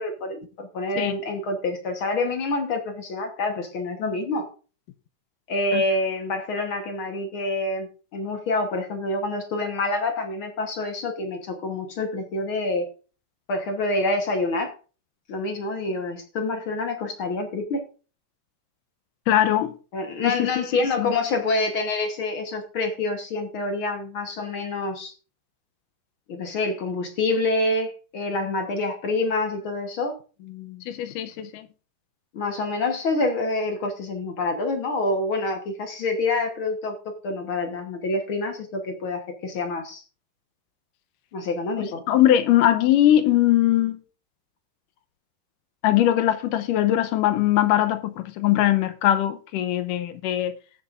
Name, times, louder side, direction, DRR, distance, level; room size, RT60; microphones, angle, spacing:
voice 1, 0.0-4.5 5.5-12.9 13.5-14.7 15.3-17.9 19.9-25.1 26.3-30.1 30.4-30.8 32.3-37.0 37.2-40.0 41.3-42.0, left 2 dB, 55° left, 1.5 m, -27 dB
voice 2, 19.3-19.7 20.2-20.5 21.0-21.1 30.9-31.7 41.8-44.0 45.8-50.5, left 12 dB, 85° left, 2.3 m, -21 dB
19.5 x 7.0 x 2.5 m
omnidirectional pair, 3.8 m